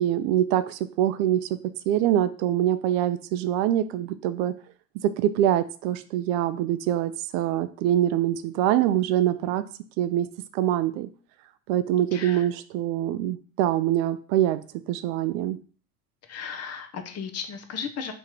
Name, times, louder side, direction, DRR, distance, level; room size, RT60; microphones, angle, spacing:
voice 1, 0.0-1.5 1.9-4.5 5.0-9.6 10.0-10.3 10.5-11.1 11.7-15.6, right 12 dB, 60° right, 12 dB, 0.5 m, -24 dB
voice 2, 12.1-12.5 16.2-18.1, left 6 dB, 35° left, 7 dB, 0.7 m, -35 dB
3.7 x 3.0 x 4.4 m, 0.41 s
hypercardioid pair, 95°, 46 cm